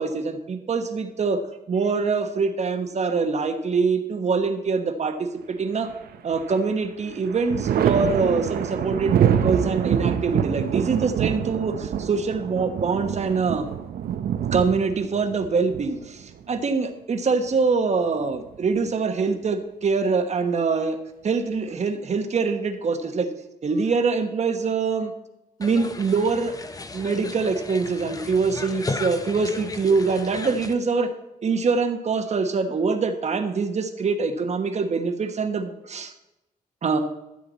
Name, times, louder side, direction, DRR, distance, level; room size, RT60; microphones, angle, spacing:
voice 1, 0.0-1.4 1.7-5.9 6.2-13.7 14.5-21.0 21.2-23.3 23.6-25.1 25.6-26.5 26.9-31.1 31.4-36.1 36.8-37.0, right 4 dB, 45° right, 7 dB, 1.2 m, -24 dB
Thunder, 5.9-6.6 7.0-16.6 18.1-18.9, right 9 dB, 80° right, 0.7 m, -26 dB
sound 1, 25.6-30.7, left 3 dB, 25° left, 0.8 m, -34 dB
13.5 x 7.8 x 4.1 m, 0.93 s
cardioid pair, 110°, 16 cm